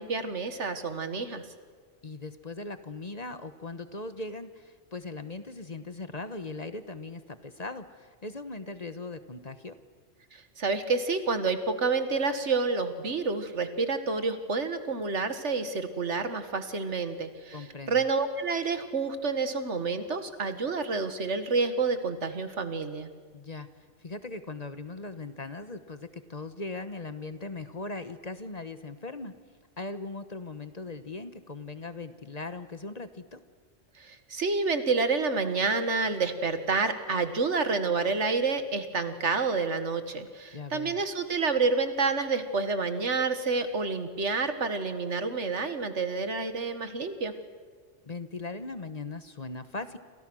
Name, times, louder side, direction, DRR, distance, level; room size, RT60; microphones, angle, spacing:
voice 1, 0.0-1.4 10.3-23.1 34.0-47.3, right 4 dB, 80° right, 9 dB, 2.0 m, -29 dB
voice 2, 2.0-9.7 17.5-18.0 23.3-23.7 24.0-29.3 29.8-33.4 40.5-41.0 48.0-50.0, left 3 dB, 35° left, 10 dB, 1.2 m, -39 dB
29.0 x 26.5 x 6.3 m, 1.6 s
omnidirectional pair, 1.2 m